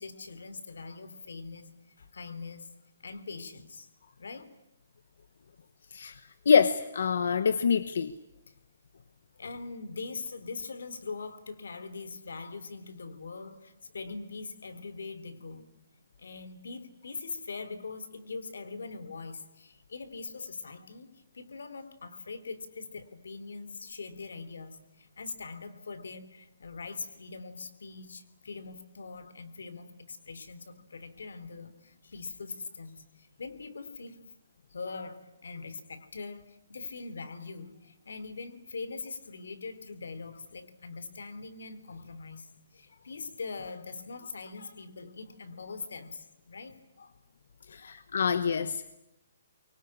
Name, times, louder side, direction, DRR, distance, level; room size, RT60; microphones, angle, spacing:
voice 1, 0.0-1.7 2.0-2.7 3.0-3.9 4.2-4.5 8.5-8.6 9.4-15.7 16.2-34.2 34.7-47.1 47.8-48.2, left 4 dB, 85° left, 11 dB, 3.4 m, -42 dB
voice 2, 6.4-8.1 47.7-49.0, left 6 dB, 60° left, 13 dB, 1.1 m, -26 dB
24.5 x 24.0 x 10.0 m, 0.89 s
hypercardioid pair, 180°, 0 cm